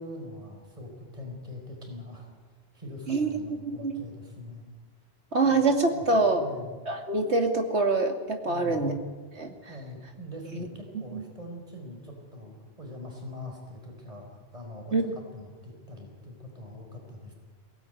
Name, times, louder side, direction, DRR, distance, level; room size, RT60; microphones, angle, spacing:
voice 1, 0.0-2.3 2.7-4.6 5.4-6.8 8.4-9.0 9.7-17.3, left 1 dB, 35° right, 2 dB, 5.0 m, -43 dB
voice 2, 5.3-6.4 6.9-8.9 9.4-9.5 10.5-10.6 11.1-11.2 14.9-15.1, right 3 dB, 85° right, 4 dB, 2.7 m, -25 dB
22.5 x 18.0 x 9.3 m, 1.4 s
omnidirectional pair, 1.1 m